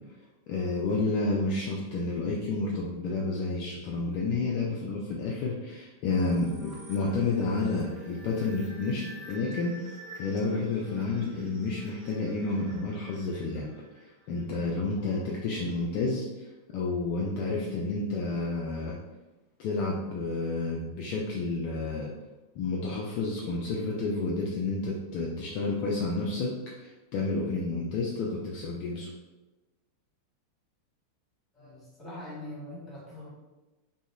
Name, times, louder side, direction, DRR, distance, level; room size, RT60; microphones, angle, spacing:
voice 1, 0.5-9.9 10.2-13.7 14.3-16.3 16.7-19.0 19.6-22.1 22.5-29.1, left 3 dB, 45° left, -3 dB, 0.4 m, -30 dB
sound 1, 6.1-14.7, right 1 dB, 35° right, 0.7 m, -49 dB
voice 2, 31.5-33.3, left 1 dB, 15° left, -5 dB, 1.2 m, -42 dB
2.9 x 2.6 x 2.3 m, 1.1 s
figure-of-eight pair, 90°, 0 cm